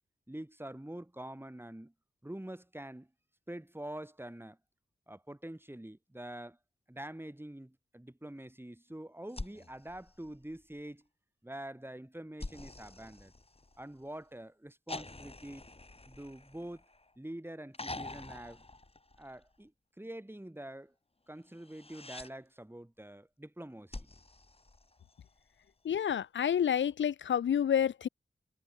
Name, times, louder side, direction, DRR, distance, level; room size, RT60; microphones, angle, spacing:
voice 1, 0.3-1.9 2.2-3.1 3.5-4.6 5.1-6.6 6.9-11.0 11.4-13.3 13.8-15.6 16.1-16.8 17.2-18.6 19.2-19.7 20.0-20.9 21.3-24.1, right 1 dB, 10° right, 3.7 m, -45 dB
sound 1, 9.3-10.9 12.4-14.1 14.9-17.2 17.7-19.6 21.5-22.3 23.9-25.4 26.9-27.0, left 2 dB, 30° left, 7.4 m, -46 dB
voice 2, 25.8-28.1, left 9 dB, 85° left, 0.6 m, -29 dB
cardioid pair, 50°, 19 cm